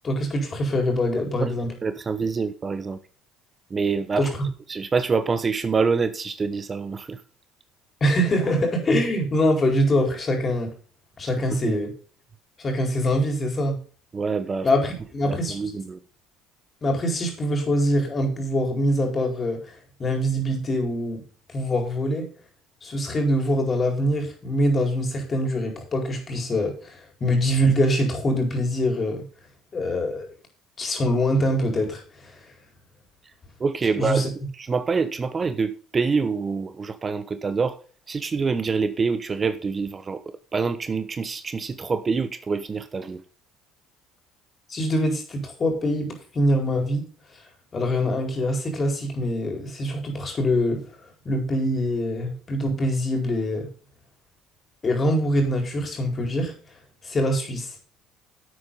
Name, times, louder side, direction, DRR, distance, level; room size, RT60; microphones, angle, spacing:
voice 1, 0.0-1.7 4.2-4.3 8.0-10.7 11.2-11.9 12.6-13.8 14.6-15.6 16.8-19.7 20.0-21.2 21.5-22.2 22.8-29.2 29.7-30.3 30.8-32.4 33.9-34.3 44.7-47.0 47.7-50.8 51.2-53.7 54.8-56.5 57.0-57.7, equal, 35° left, 4.5 m, -24 dB
voice 2, 1.8-3.0 3.7-4.3 4.7-7.2 11.5-11.8 14.1-14.7 15.2-16.0 33.6-34.3 34.6-37.8 38.1-40.2 40.5-43.2, right 5 dB, 30° right, 0.9 m, -26 dB
11.5 x 8.2 x 3.9 m
hypercardioid pair, 60°, 0 cm